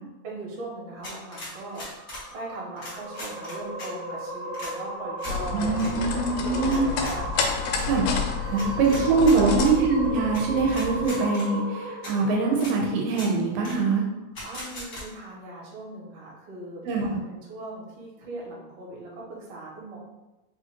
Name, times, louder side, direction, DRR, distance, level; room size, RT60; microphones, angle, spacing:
voice 1, 0.2-7.7 8.4-9.6 14.4-16.8 17.1-20.0, right 2 dB, 70° right, -3 dB, 2.3 m, -39 dB
sound 1, 1.0-2.3 2.8-3.9 4.5-4.7 5.2-5.4 5.7-5.9 6.7-7.9 8.6-9.7 10.3-10.4 10.7-11.5 12.0-12.1 12.5-12.7 13.1-13.3 13.6-13.8 14.3-15.0, left 1 dB, 55° left, 0.9 m, -39 dB
sound 2, 1.0-13.5, right 1 dB, 50° right, 1.3 m, -37 dB
sound 3, 5.2-11.1, left 5 dB, 80° left, 2.0 m, -30 dB
voice 2, 5.5-6.9 7.9-14.0 16.8-17.2, right 4 dB, 85° right, -1 dB, 2.4 m, -23 dB
5.4 x 2.4 x 2.9 m, 1.0 s
omnidirectional pair, 3.9 m